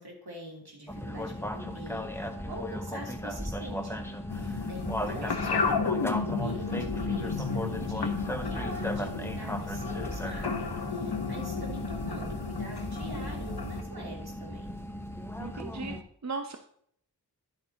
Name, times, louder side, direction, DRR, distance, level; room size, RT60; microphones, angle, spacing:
voice 1, 0.0-14.7, right 1 dB, 70° right, -1 dB, 3.1 m, -44 dB
sound 1, 0.9-16.0, equal, 5° left, 0.9 m, -37 dB
sound 2, 4.3-13.8, left 4 dB, 80° left, 1.1 m, -32 dB
voice 2, 15.4-16.0 16.2-16.6, right 4 dB, 45° right, 6 dB, 0.7 m, -36 dB
10.5 x 8.8 x 2.9 m, 0.66 s
wide cardioid pair, 55°, 39 cm